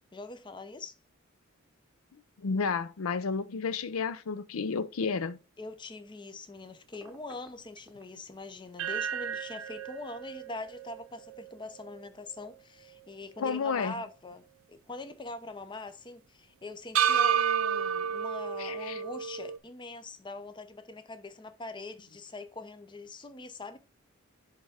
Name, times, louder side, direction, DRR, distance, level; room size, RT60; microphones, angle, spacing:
voice 1, 0.1-1.0 5.6-14.4 14.7-23.8, left 2 dB, 20° left, 0.6 m, -43 dB
voice 2, 2.4-5.4 13.4-13.9 18.6-19.0, left 5 dB, 80° left, 0.5 m, -31 dB
Telephone, 6.9-8.0, right 2 dB, 15° right, 0.9 m, -54 dB
sound 1, 8.8-13.1 13.4-13.5 16.9-19.6, right 8 dB, 80° right, 0.6 m, -31 dB
10.5 x 3.5 x 3.5 m
head